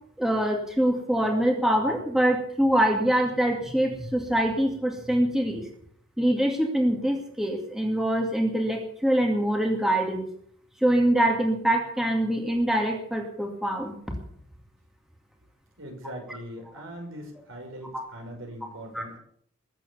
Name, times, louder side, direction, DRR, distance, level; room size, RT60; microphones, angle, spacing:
voice 1, 0.2-5.6 6.2-10.2 10.8-14.0 17.9-18.0 18.9-19.0, right 1 dB, ahead, 1 dB, 2.4 m, -24 dB
voice 2, 15.8-19.2, equal, 70° right, 2 dB, 5.7 m, -41 dB
21.5 x 8.4 x 7.2 m, 0.64 s
head